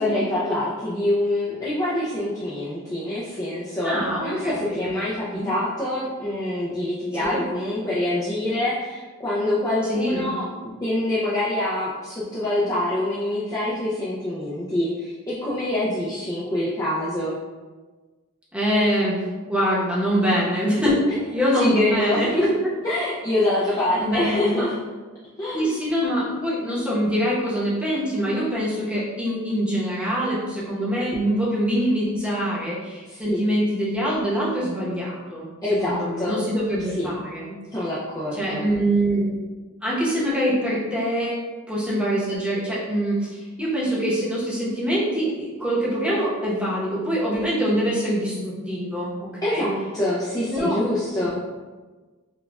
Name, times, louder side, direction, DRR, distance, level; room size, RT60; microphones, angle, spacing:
voice 1, 0.0-3.9 4.2-10.4 10.8-17.4 20.3-20.4 21.5-22.4 22.8-24.8 25.4-25.7 33.1-33.4 35.6-36.4 37.0-37.1 37.7-38.7 49.4-51.4, left 1 dB, 15° left, -8 dB, 0.4 m, -25 dB
voice 2, 3.8-4.9 5.3-5.5 7.2-7.4 9.9-10.3 18.5-20.9 21.3-22.3 24.0-24.7 25.5-35.5 35.8-37.5 38.3-39.3 39.8-41.3 41.7-49.7 50.5-50.8, equal, 5° right, -8 dB, 0.9 m, -24 dB
6.1 x 2.3 x 2.3 m, 1.3 s
head